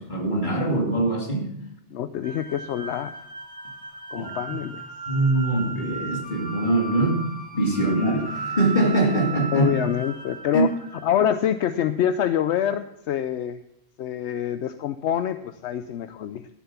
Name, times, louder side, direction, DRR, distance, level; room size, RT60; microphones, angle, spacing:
voice 1, 0.0-1.5 4.1-4.3 5.1-7.2 7.5-9.7 10.5-10.6, right 2 dB, 45° left, -1 dB, 2.9 m, -23 dB
voice 2, 1.9-3.1 4.1-4.8 9.5-10.7 11.0-13.6 14.0-16.5, left 10 dB, 80° left, 11 dB, 0.9 m, -26 dB
sound 1, 2.2-11.4, right 3 dB, 10° left, 1.6 m, -36 dB
13.5 x 7.4 x 5.8 m, 0.80 s
omnidirectional pair, 1.1 m